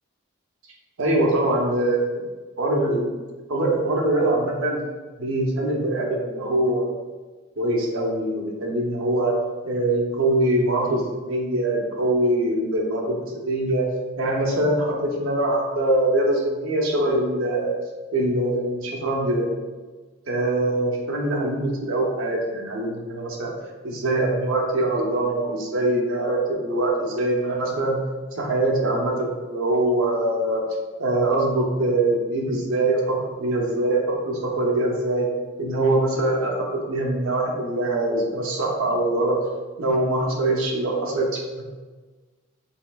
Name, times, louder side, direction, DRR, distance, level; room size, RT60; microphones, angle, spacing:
voice 1, 1.0-2.2 2.6-3.1 3.5-4.8 5.2-7.0 7.6-9.3 9.6-13.2 13.4-13.9 14.2-17.8 18.1-19.4 20.3-23.5 23.8-28.0 28.4-30.6 31.0-34.0 34.3-35.3 35.6-39.4 39.8-41.4, right 1 dB, 85° right, -1 dB, 0.8 m, -23 dB
4.4 x 3.6 x 2.3 m, 1.3 s
head